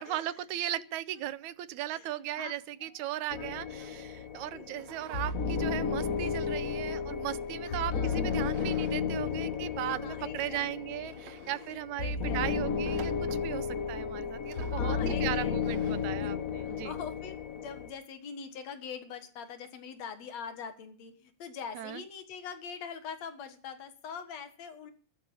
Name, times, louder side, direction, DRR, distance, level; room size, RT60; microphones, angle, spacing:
voice 1, 0.0-16.9 21.8-22.0, right 13 dB, 80° right, 2.2 m, -37 dB
sound 1, 3.3-17.9, left 6 dB, 85° left, 0.7 m, -33 dB
voice 2, 3.4-3.9 4.5-4.8 7.7-8.3 8.9-9.5 9.9-13.1 14.3-14.4 14.7-24.9, left 6 dB, 65° left, 2.7 m, -44 dB
sound 2, 4.7-5.4 5.8-7.2 8.2-9.0 9.3-9.4 10.1-10.2 10.6-10.7 11.1-11.8 12.8-13.5 14.4-14.9 15.6-16.2, right 9 dB, 65° right, 2.4 m, -51 dB
14.5 x 12.5 x 5.5 m
omnidirectional pair, 3.3 m